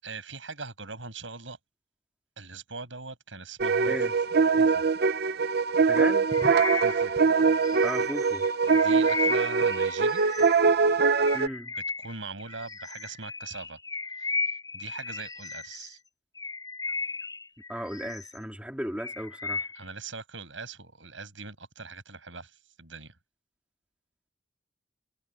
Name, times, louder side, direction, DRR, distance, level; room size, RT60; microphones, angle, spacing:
voice 1, 0.0-1.6 2.4-4.0 4.6-4.7 6.7-7.1 8.7-10.2 12.0-13.8 14.2-16.0 19.7-23.1, right 4 dB, 90° right, 7.9 m, -41 dB
sound 1, 3.6-11.5, right 5 dB, 55° right, 0.8 m, -23 dB
voice 2, 5.9-6.3 7.8-8.4 11.3-11.7 17.7-19.7, equal, 5° right, 3.5 m, -35 dB
Bird vocalization bird call bird song, 6.3-10.8 11.2-16.0 16.4-18.5 18.8-19.9, left 4 dB, 20° left, 7.8 m, -36 dB
head